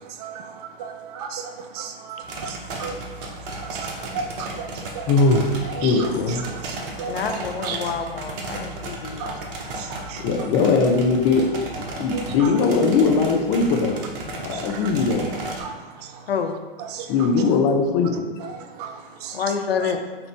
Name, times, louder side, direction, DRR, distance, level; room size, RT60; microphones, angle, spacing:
voice 1, 0.0-5.1 5.7-7.2 7.6-7.9 8.7-8.8 9.2-10.5 12.1-12.6 14.4-14.9 15.6-16.3 16.8-17.1 18.4-19.4, right 6 dB, 40° right, 6 dB, 0.5 m, -35 dB
sound 1, 2.2-15.6, right 2 dB, 60° right, 1.0 m, -34 dB
voice 2, 5.1-6.4 10.2-11.5 12.0-14.0 14.4-15.3 17.1-18.3, left 4 dB, 35° left, 3 dB, 0.7 m, -20 dB
voice 3, 7.1-9.4 16.3-16.6 19.3-20.0, left 6 dB, 75° left, 6 dB, 0.6 m, -27 dB
5.8 x 2.6 x 3.3 m, 1.3 s
hypercardioid pair, 105°, 30 cm